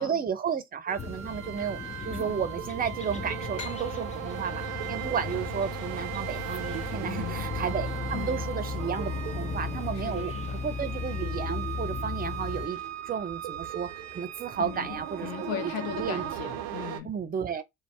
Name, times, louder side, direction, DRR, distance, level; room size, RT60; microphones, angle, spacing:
voice 1, 0.0-10.3 10.6-12.8 13.1-16.2 17.0-17.6, right 7 dB, 25° right, 0.6 m, -33 dB
sound 1, 0.9-17.0, right 11 dB, 70° right, 0.5 m, -38 dB
sound 2, 1.0-12.7, left 6 dB, 20° left, 0.4 m, -36 dB
sound 3, 3.5-7.0, left 4 dB, 85° left, 1.0 m, -48 dB
voice 2, 7.0-7.5 8.1-8.5 9.9-10.6 14.6-17.1, left 11 dB, 65° left, 0.7 m, -38 dB
2.6 x 2.1 x 3.1 m
hypercardioid pair, 50°, 37 cm